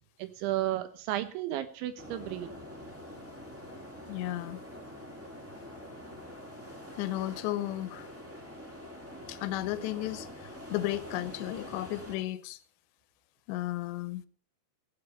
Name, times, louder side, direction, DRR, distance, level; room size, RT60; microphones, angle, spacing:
voice 1, 0.2-2.6, right 14 dB, 80° right, 3.5 m, -33 dB
sound 1, 2.0-12.2, left 1 dB, 20° right, 0.3 m, -45 dB
voice 2, 4.1-4.6 7.0-8.1 9.3-12.6 13.5-14.2, left 15 dB, 80° left, 2.8 m, -34 dB
15.5 x 9.2 x 5.7 m
omnidirectional pair, 5.5 m